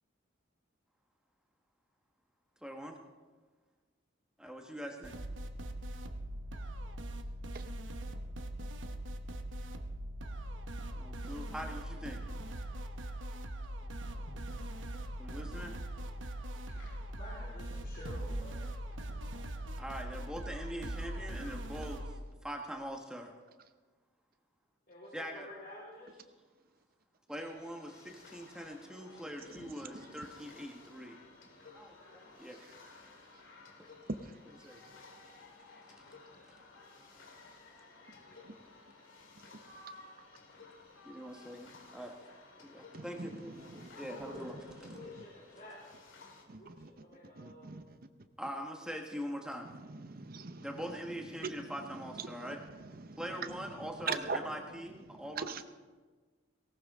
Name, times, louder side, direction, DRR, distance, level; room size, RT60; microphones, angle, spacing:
voice 1, 2.6-2.9 4.4-5.1 11.0-12.2 15.2-15.7 19.8-22.0 22.4-23.3 25.1-25.5 27.3-31.2 31.7-32.7 34.6-34.8 41.0-42.1 42.6-44.5 48.4-49.7 50.6-52.6 53.2-55.6, equal, 5° right, 1.2 m, -43 dB
sound 1, 5.0-22.2, right 1 dB, 75° right, 1.1 m, -41 dB
voice 2, 16.7-19.0 24.9-26.2 44.0-45.8 46.6-47.8, left 1 dB, 50° left, 3.9 m, -51 dB
sound 2, 27.3-46.5, left 3 dB, 80° left, 2.1 m, -55 dB
voice 3, 29.5-30.2 32.6-32.7 34.1-34.3 38.4-38.6 42.9-43.9 44.2-44.3 44.8-45.0 46.5-46.9 47.4-48.0 49.7-50.7 51.0-54.4 55.1-55.6, right 4 dB, 50° right, 0.8 m, -42 dB
18.5 x 17.5 x 3.6 m
head